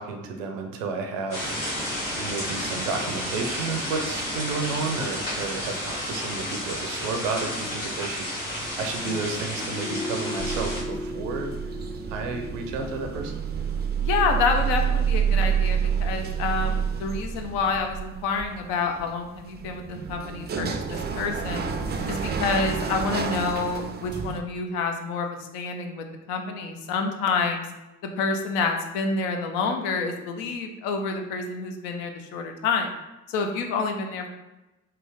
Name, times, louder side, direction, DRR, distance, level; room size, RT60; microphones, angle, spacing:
voice 1, 0.0-1.6 2.2-11.5 12.1-13.3, right 4 dB, 75° right, 4 dB, 0.6 m, -32 dB
sound 1, 1.3-10.8, equal, 90° left, 1.3 m, -31 dB
sound 2, 9.5-14.7 15.0-15.1, left 2 dB, 25° left, 0.6 m, -37 dB
sound 3, 10.4-24.4, right 7 dB, 25° right, 0.4 m, -29 dB
voice 2, 14.0-21.6 22.1-27.7 28.2-32.9 33.3-34.3, left 4 dB, 65° left, 4 dB, 0.6 m, -28 dB
3.4 x 2.8 x 3.3 m, 1.0 s
figure-of-eight pair, 40°, 40 cm